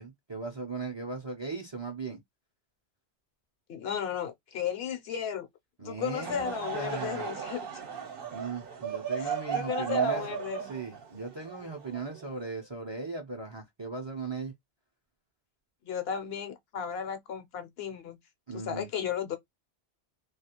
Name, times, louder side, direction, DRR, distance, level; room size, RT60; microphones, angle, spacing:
voice 1, 0.0-2.2 5.8-7.3 8.3-10.2 10.6-14.5 18.5-18.9, right 4 dB, 35° right, 0.5 m, -38 dB
voice 2, 3.7-5.5 5.8-7.6 9.2-10.7 15.8-18.2 18.5-19.4, left 8 dB, 65° left, 0.9 m, -34 dB
Laughter / Crowd, 6.0-12.5, right 7 dB, 60° right, 0.9 m, -35 dB
2.4 x 2.3 x 2.8 m
omnidirectional pair, 1.1 m